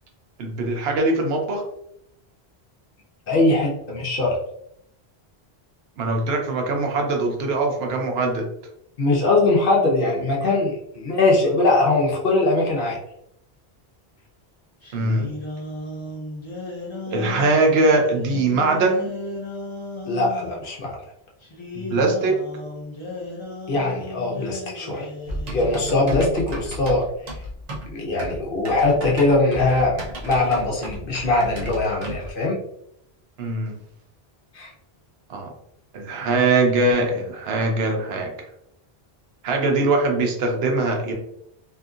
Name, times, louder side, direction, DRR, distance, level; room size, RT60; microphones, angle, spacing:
voice 1, 0.4-1.6 6.0-8.5 14.9-15.3 17.1-19.1 21.7-22.4 33.4-33.8 35.3-35.5 35.9-38.3 39.4-41.1, right 2 dB, 75° right, 3 dB, 0.8 m, -21 dB
voice 2, 3.3-4.4 9.0-13.0 20.1-21.0 23.7-25.1 25.5-27.1 27.9-32.6 34.5-34.7, left 2 dB, 60° left, -2 dB, 0.9 m, -21 dB
sound 1, 14.8-20.6 21.4-26.5, left 2 dB, 35° left, 0.6 m, -35 dB
Typing, 25.3-32.3, equal, 45° right, 0.7 m, -34 dB
2.7 x 2.6 x 2.4 m, 0.75 s
omnidirectional pair, 1.1 m